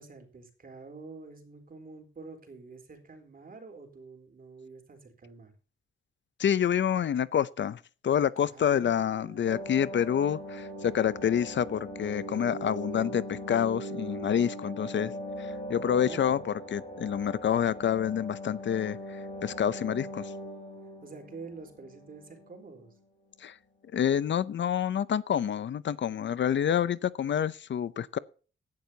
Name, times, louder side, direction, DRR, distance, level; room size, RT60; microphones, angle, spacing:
voice 1, 0.0-5.5 8.4-9.7 15.8-16.4 21.0-22.9, right 4 dB, 45° right, 4.0 m, -47 dB
voice 2, 6.4-15.1 15.4-16.4 16.7-20.3 23.4-23.5 23.9-28.2, left 9 dB, 60° left, 0.6 m, -28 dB
sound 1, 9.5-22.5 22.8-22.9, equal, 30° left, 3.9 m, -40 dB
17.5 x 11.5 x 2.8 m
wide cardioid pair, 135°, 21 cm